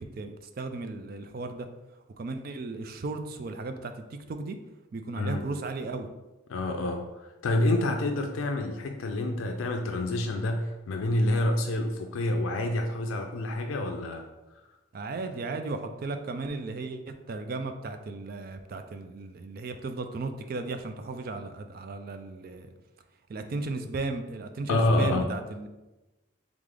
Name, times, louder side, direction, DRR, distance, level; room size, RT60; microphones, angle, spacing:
voice 1, 0.0-1.7 2.2-4.6 4.9-6.1 14.9-17.0 17.3-22.7 23.3-25.7, right 3 dB, 45° right, 7 dB, 0.4 m, -35 dB
voice 2, 5.2-5.5 6.5-14.2 24.7-25.3, left 1 dB, 85° left, 4 dB, 0.4 m, -28 dB
3.6 x 3.3 x 3.8 m, 1.1 s
head